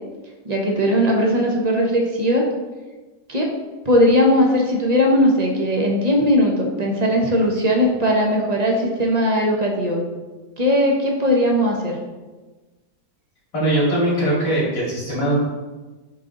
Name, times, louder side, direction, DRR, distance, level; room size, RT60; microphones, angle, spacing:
voice 1, 0.4-2.5 3.3-3.6 3.8-10.1 10.6-12.0, equal, 30° right, 0 dB, 0.8 m, -18 dB
voice 2, 13.5-15.3, right 1 dB, 90° left, -6 dB, 3.1 m, -20 dB
8.6 x 3.7 x 3.8 m, 1.2 s
omnidirectional pair, 1.8 m